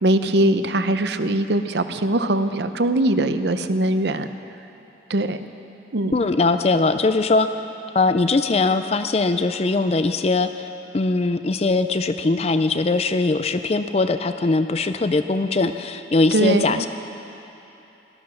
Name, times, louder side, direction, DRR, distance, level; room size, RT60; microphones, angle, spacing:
voice 1, 0.0-4.3 5.1-5.4 5.9-6.1 16.3-16.8, right 1 dB, 65° right, 10 dB, 0.7 m, -21 dB
voice 2, 6.1-7.5 7.9-10.7 10.9-16.9, left 3 dB, 35° left, 9 dB, 0.4 m, -21 dB
18.0 x 12.5 x 6.3 m, 3.0 s
head